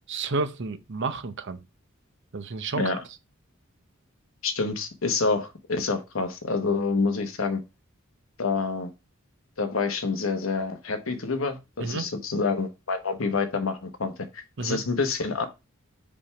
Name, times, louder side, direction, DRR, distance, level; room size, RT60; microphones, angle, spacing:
voice 1, 0.1-1.6 2.3-2.8 11.8-12.1 14.6-14.8, right 3 dB, 60° right, 0.7 m, -30 dB
voice 2, 4.4-7.6 8.4-8.9 9.6-15.5, left 4 dB, 75° left, 1.1 m, -27 dB
5.2 x 3.4 x 5.7 m
head